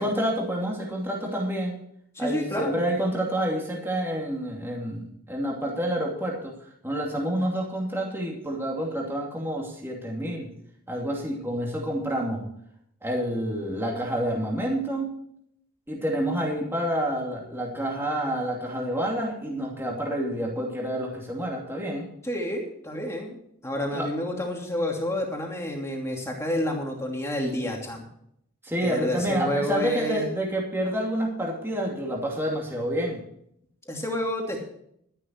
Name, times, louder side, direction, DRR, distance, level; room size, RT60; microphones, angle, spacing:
voice 1, 0.0-1.8 2.2-6.5 6.8-10.5 10.9-12.5 13.0-15.2 15.9-22.1 23.9-24.1 28.6-33.2, right 1 dB, 10° right, -2 dB, 2.7 m, -28 dB
voice 2, 2.1-2.9 22.2-23.4 23.6-28.0 28.8-30.3 33.9-34.6, left 1 dB, 10° left, 0 dB, 2.8 m, -29 dB
12.5 x 11.5 x 4.6 m, 0.70 s
head